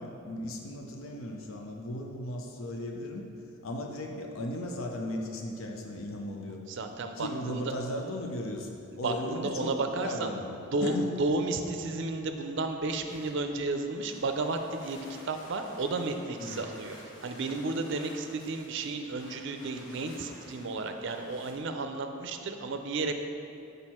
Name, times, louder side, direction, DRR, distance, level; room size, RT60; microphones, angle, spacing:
voice 1, 0.0-3.3 3.6-6.6 7.1-11.1 16.4-16.7, left 1 dB, 75° left, 2 dB, 0.6 m, -37 dB
voice 2, 6.7-7.7 8.9-10.3 10.7-17.0 17.2-23.1, right 3 dB, 60° right, 6 dB, 0.5 m, -32 dB
sound 1, 12.7-21.5, left 1 dB, 60° left, 1.3 m, -52 dB
6.2 x 5.2 x 4.3 m, 2.7 s
head